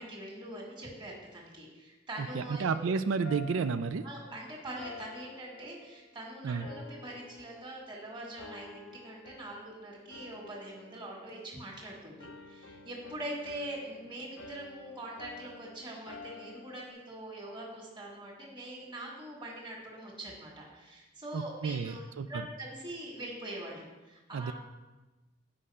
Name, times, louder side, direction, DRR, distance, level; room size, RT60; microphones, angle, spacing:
voice 1, 0.0-2.9 4.0-24.5, right 1 dB, 25° right, -3 dB, 1.9 m, -43 dB
voice 2, 2.2-4.1 6.4-6.7 21.3-22.3 24.3-24.5, right 5 dB, 90° right, 11 dB, 0.4 m, -31 dB
sound 1, 3.2-6.2 6.6-8.0 8.4-9.8 10.1-11.8 12.2-16.9, left 3 dB, 75° left, 0.6 m, -51 dB
8.5 x 4.9 x 5.6 m, 1.1 s
head